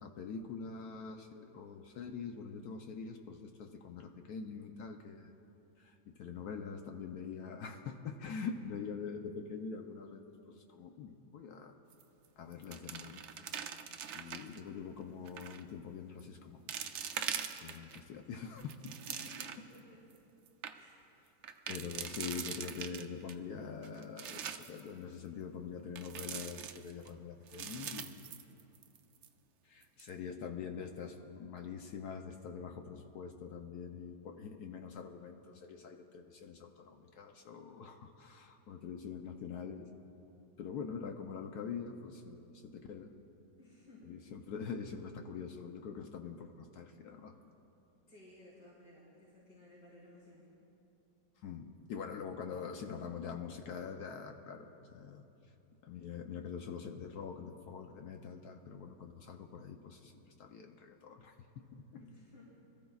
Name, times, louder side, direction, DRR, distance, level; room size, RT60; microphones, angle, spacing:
voice 1, 0.0-5.3 5.8-10.2 10.5-11.7 12.4-13.2 14.1-16.7 17.6-18.8 21.7-28.2 29.6-39.9 40.6-43.1 44.0-47.4 51.4-55.2 55.8-60.1 60.4-62.0, left 6 dB, 70° left, 4 dB, 1.1 m, -44 dB
sound 1, 11.9-12.3 12.5-14.6 15.3-15.6 16.2-16.3 16.7-18.0 18.5-19.8 20.2-20.3 20.5-20.7 21.4-23.3 23.8-24.8 26.0-27.1 27.5-29.0 29.2-29.3 29.8-30.1, right 8 dB, 75° right, 0.6 m, -42 dB
voice 2, 18.8-20.0 20.7-20.9 43.6-44.2 48.1-50.5 62.0-62.4, left 2 dB, 90° left, -9 dB, 4.8 m, -57 dB
26.0 x 14.0 x 2.4 m, 2.9 s
omnidirectional pair, 1.9 m